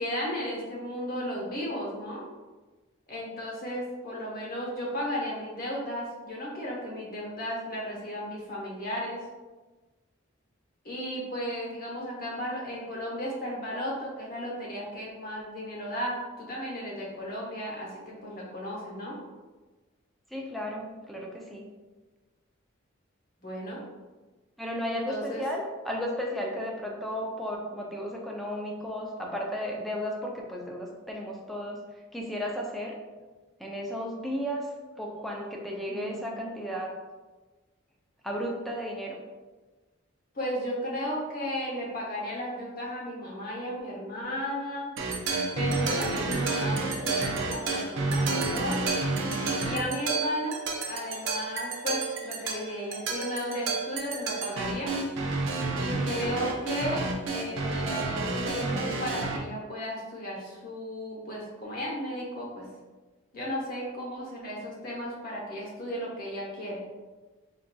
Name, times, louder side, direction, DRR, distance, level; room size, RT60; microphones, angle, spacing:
voice 1, 0.0-2.2 3.1-9.2 10.8-19.2 23.4-23.8 24.9-25.4 35.9-36.3 40.3-44.9 45.6-48.8 49.6-50.6 50.9-55.0 55.8-57.0 57.3-62.7 63.3-66.8, equal, 45° left, -3 dB, 0.8 m, -34 dB
voice 2, 20.3-21.7 24.6-31.8 32.1-33.0 33.6-37.0 38.2-39.2, equal, ahead, -1 dB, 0.3 m, -34 dB
sound 1, 45.0-59.4, right 3 dB, 60° right, 0.5 m, -30 dB
3.9 x 2.5 x 2.2 m, 1.3 s
head